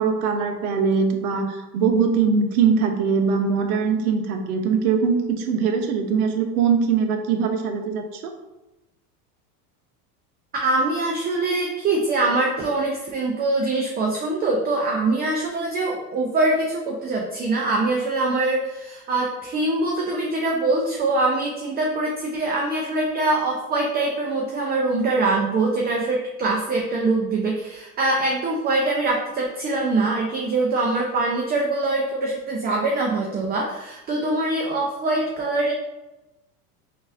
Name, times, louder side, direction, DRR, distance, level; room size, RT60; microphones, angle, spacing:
voice 1, 0.0-8.3, right 6 dB, 70° right, 6 dB, 0.7 m, -22 dB
voice 2, 10.6-35.7, right 2 dB, 20° right, -1 dB, 0.4 m, -23 dB
3.8 x 2.6 x 2.5 m, 0.99 s
hypercardioid pair, 95°, 45 cm